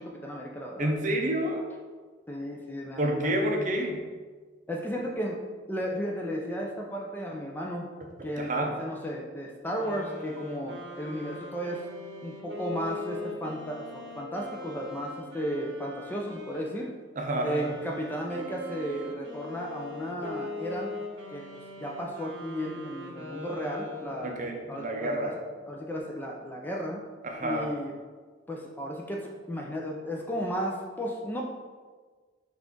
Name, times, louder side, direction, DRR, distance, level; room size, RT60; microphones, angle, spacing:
voice 1, 0.0-0.9 2.3-3.4 4.7-5.4 5.7-7.9 8.2-11.8 12.2-16.9 17.4-20.9 21.3-24.3 24.7-25.3 25.7-27.0 27.4-27.9 28.5-31.4, equal, 10° left, -1 dB, 0.3 m, -34 dB
voice 2, 0.8-1.7 3.0-4.1 8.4-8.8 17.2-17.7 24.2-25.4 27.2-27.7, right 1 dB, 40° right, 2 dB, 0.5 m, -29 dB
sound 1, 9.7-16.7 17.3-24.5, left 2 dB, 65° right, 0.8 m, -41 dB
5.7 x 2.5 x 3.7 m, 1.5 s
head